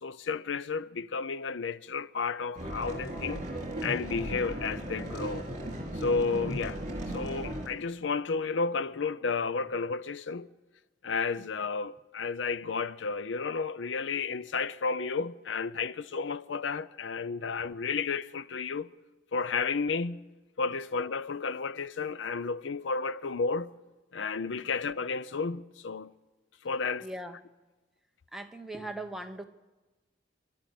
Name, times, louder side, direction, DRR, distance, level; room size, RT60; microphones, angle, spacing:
voice 1, 0.0-3.5 3.8-5.5 5.9-6.8 7.1-10.5 11.0-18.9 19.3-20.2 20.6-23.7 24.1-26.1 26.6-27.1, left 4 dB, 90° left, 0.6 m, -32 dB
sound 1, 2.5-7.7, right 1 dB, 40° right, 3.9 m, -36 dB
voice 2, 27.0-27.4 28.3-29.4, right 1 dB, ahead, 1.0 m, -41 dB
26.5 x 12.0 x 8.4 m
head